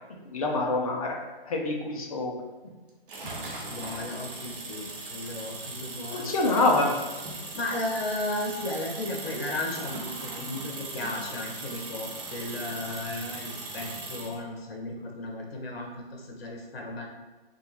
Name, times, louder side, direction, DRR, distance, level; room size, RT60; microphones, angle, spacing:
voice 1, 0.3-1.1 1.5-2.3 6.1-7.0, left 2 dB, 35° left, 0 dB, 0.5 m, -25 dB
sound 1, 3.1-14.4, right 2 dB, 60° right, 0.8 m, -39 dB
voice 2, 3.7-6.3 7.5-17.0, left 2 dB, 75° left, 0 dB, 1.0 m, -35 dB
3.7 x 2.3 x 2.8 m, 1.2 s
hypercardioid pair, 160°, 30 cm